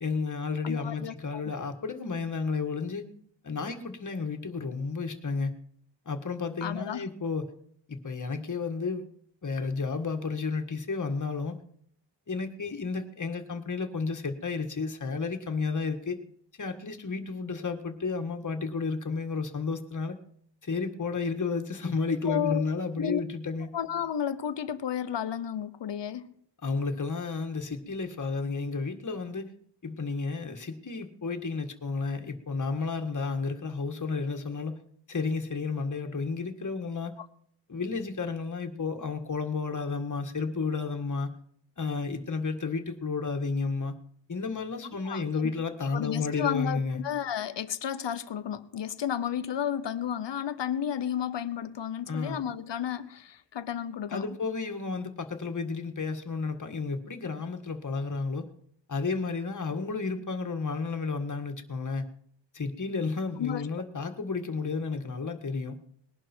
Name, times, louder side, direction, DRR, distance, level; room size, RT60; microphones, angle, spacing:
voice 1, 0.0-3.0 3.4-5.5 6.1-7.5 7.9-9.0 9.4-11.6 12.3-16.2 16.6-20.2 20.6-23.7 26.6-29.5 29.8-34.8 35.1-37.2 37.7-41.3 41.8-43.9 44.3-47.0 52.1-52.4 54.1-58.5 58.9-62.1 62.5-65.8, left 4 dB, 45° left, 1.7 m, -32 dB
voice 2, 0.6-1.4 6.6-7.0 22.3-22.6 23.0-23.2 23.7-26.3 37.2-37.3 45.0-45.5 45.9-54.3 63.4-63.6, left 9 dB, 75° left, 0.9 m, -32 dB
20.0 x 11.5 x 4.5 m
wide cardioid pair, 95°, 43 cm